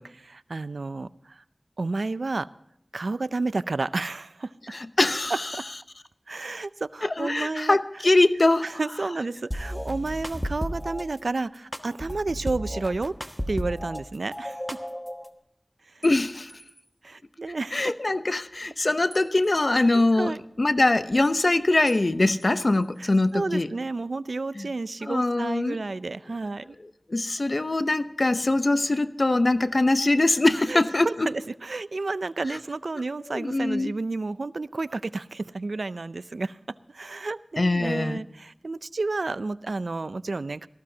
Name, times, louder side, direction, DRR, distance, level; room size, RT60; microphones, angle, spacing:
voice 1, 0.0-1.4 1.8-2.5 2.9-4.5 5.3-5.7 6.3-7.8 8.6-13.2 13.5-14.6 17.0-17.8 20.2-20.4 22.8-26.8 30.7-36.6 36.9-40.7, right 3 dB, 85° right, 16 dB, 0.4 m, -31 dB
voice 2, 4.7-5.5 7.0-8.7 16.0-16.5 17.7-23.7 24.6-24.7 25.0-25.8 27.1-31.3 33.3-33.9 37.6-38.2, left 2 dB, 55° left, 11 dB, 0.8 m, -23 dB
sound 1, 9.5-11.0 11.7-14.0 14.3-15.3, equal, 10° left, 1.1 m, -33 dB
sound 2, 16.0-17.0 19.1-20.1 21.9-22.1 22.4-23.4, right 1 dB, 40° right, 6.1 m, -52 dB
18.0 x 14.5 x 2.8 m, 0.79 s
wide cardioid pair, 45°, 0 cm